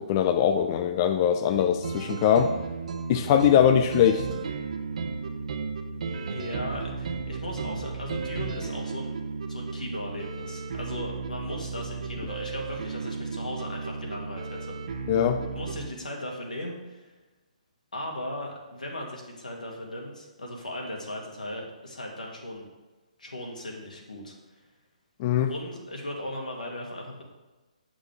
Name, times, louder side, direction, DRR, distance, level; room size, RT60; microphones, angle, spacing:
voice 1, 0.0-2.5 3.1-4.2 15.1-15.4 25.2-25.5, left 9 dB, 30° left, 7 dB, 0.4 m, -22 dB
sound 1, 1.5-15.9, right 5 dB, 60° right, 0.9 m, -34 dB
voice 2, 6.3-14.8 15.6-17.1 17.9-22.7 23.2-24.7 25.5-27.2, left 1 dB, 90° left, 0 dB, 2.2 m, -37 dB
8.0 x 7.5 x 3.4 m, 1.2 s
hypercardioid pair, 145°, 4 cm